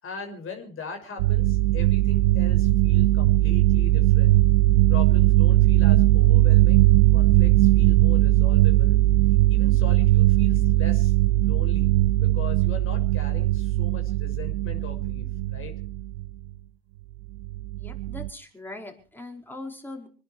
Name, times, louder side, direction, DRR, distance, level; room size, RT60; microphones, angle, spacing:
voice 1, 0.0-4.4 4.9-9.0 9.5-15.7, left 5 dB, 40° left, 5 dB, 6.3 m, -40 dB
sound 1, 1.2-16.3 17.4-18.3, right 16 dB, 75° right, 0.7 m, -19 dB
voice 2, 17.8-20.1, left 2 dB, 5° left, 2 dB, 5.1 m, -40 dB
26.0 x 10.5 x 4.7 m, 0.38 s
hypercardioid pair, 80°, 32 cm